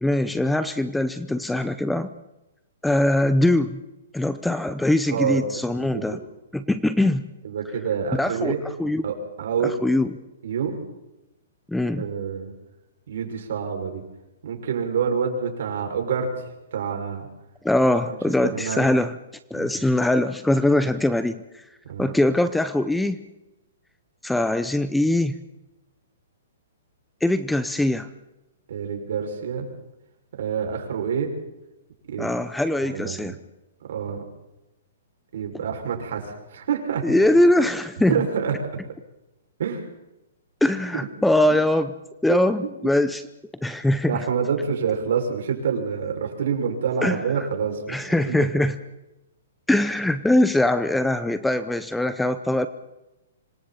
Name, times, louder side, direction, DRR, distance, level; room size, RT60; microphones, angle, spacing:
voice 1, 0.0-2.1 2.8-3.8 4.1-6.2 6.5-7.2 8.1-8.5 8.8-9.0 9.6-10.1 11.7-12.0 17.6-19.2 19.5-21.6 22.0-23.2 24.2-25.4 27.2-28.1 32.2-33.4 37.0-38.2 40.6-41.9 42.2-43.2 43.6-44.2 47.0-47.2 47.9-48.8 49.7-52.7, left 1 dB, 5° left, 12 dB, 0.6 m, -22 dB
voice 2, 5.1-5.5 5.8-6.2 7.4-8.6 9.0-9.7 10.4-10.8 11.9-12.5 13.1-14.0 14.4-16.3 16.7-17.3 18.1-18.2 18.4-18.8 19.5-19.8 21.9-22.1 28.7-29.7 30.4-31.3 32.1-32.3 32.8-33.4 33.9-34.2 35.3-37.0 37.6-37.7 38.1-38.5 39.6-39.8 41.5-41.6 42.3-42.7 44.1-47.9 48.3-48.5, right 7 dB, 60° right, 3 dB, 6.1 m, -27 dB
26.5 x 24.5 x 4.3 m, 0.96 s
hypercardioid pair, 165°, 0 cm